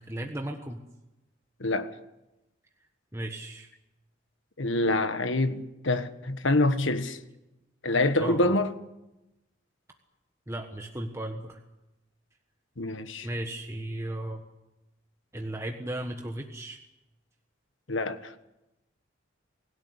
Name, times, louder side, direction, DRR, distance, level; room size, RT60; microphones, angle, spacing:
voice 1, 0.1-0.8 3.1-3.7 8.2-8.6 10.5-11.6 13.2-14.4 15.3-16.8, right 1 dB, 15° right, 1.4 m, -35 dB
voice 2, 1.6-1.9 4.6-7.2 7.8-8.7 12.8-13.3 17.9-18.3, left 2 dB, 80° left, 1.5 m, -26 dB
24.5 x 17.0 x 9.8 m
head